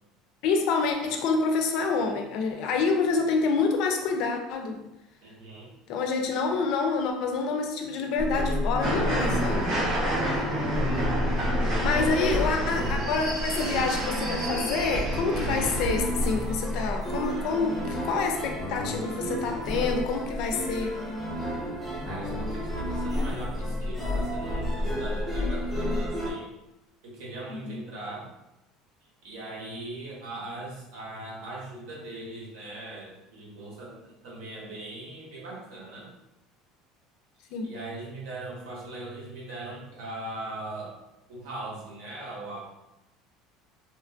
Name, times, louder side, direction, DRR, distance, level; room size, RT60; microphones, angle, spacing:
voice 1, 0.4-4.8 5.9-9.7 11.8-21.0 27.5-27.8 37.5-37.7, left 4 dB, 50° left, 3 dB, 0.4 m, -27 dB
voice 2, 5.2-5.7 10.1-10.6 11.7-12.4 22.0-26.5 27.0-28.3 29.2-36.1 37.6-41.0 41.3-42.6, right 2 dB, 75° right, -4 dB, 1.1 m, -40 dB
sound 1, 8.2-26.3, left 1 dB, 5° right, 0.8 m, -30 dB
sound 2, 8.8-16.1, right 1 dB, 40° right, 0.7 m, -30 dB
sound 3, 11.7-18.4 18.7-18.8, right 2 dB, 20° right, 0.4 m, -43 dB
3.0 x 2.4 x 2.3 m, 0.88 s
cardioid pair, 180°, 0 cm